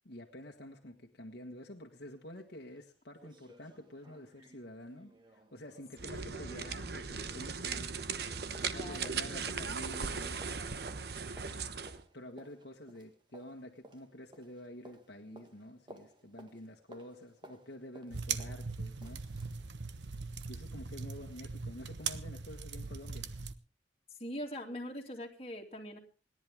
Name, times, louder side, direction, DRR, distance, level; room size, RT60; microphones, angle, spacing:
voice 1, 0.0-8.1 8.4-10.6 12.1-19.2 20.5-23.3, left 1 dB, 65° left, 2 dB, 1.6 m, -49 dB
sound 1, 2.3-2.4 2.8-2.9 3.2-7.7 8.0-19.6 20.0-20.1, right 1 dB, 25° right, 1.7 m, -58 dB
sound 2, 5.9-12.0, right 5 dB, 60° right, 1.0 m, -38 dB
voice 2, 6.0-6.6 8.8-9.7 24.1-26.0, equal, 35° left, 1 dB, 2.7 m, -43 dB
sound 3, 18.1-23.5, right 5 dB, 85° right, 1.1 m, -40 dB
28.0 x 11.0 x 3.6 m, 0.37 s
head